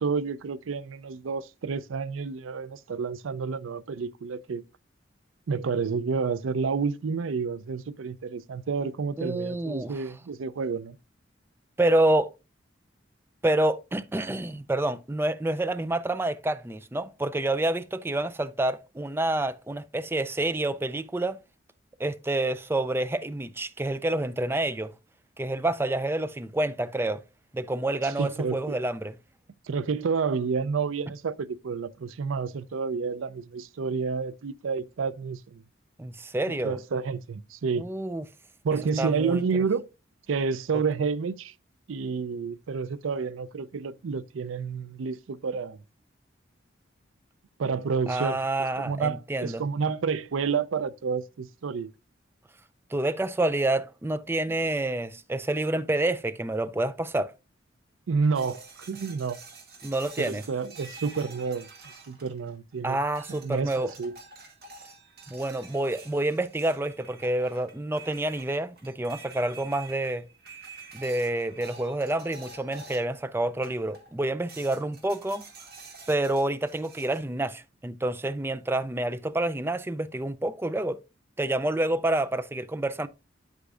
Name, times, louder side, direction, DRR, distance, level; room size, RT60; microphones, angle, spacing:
voice 1, 0.0-4.6 5.5-11.0 28.2-28.8 29.7-35.6 36.6-37.8 38.6-39.9 40.3-41.5 41.9-45.8 47.6-48.4 48.8-51.9 58.1-59.4 60.2-61.7 62.1-63.0 63.4-64.2, right 5 dB, 90° right, 0.5 m, -29 dB
voice 2, 9.2-10.1 11.8-12.3 13.4-21.4 22.0-24.9 25.4-27.2 27.5-29.2 36.0-36.8 37.7-38.2 39.0-39.4 40.7-40.8 48.1-49.6 52.9-57.3 59.8-60.4 62.8-63.9 65.3-70.3 70.9-75.5 76.1-81.0 81.4-83.1, right 1 dB, 10° right, 0.3 m, -28 dB
sound 1, 58.3-62.7 63.2-73.2 73.6-74.1 74.5-77.2, right 3 dB, 50° right, 2.1 m, -48 dB
8.6 x 8.1 x 2.4 m
head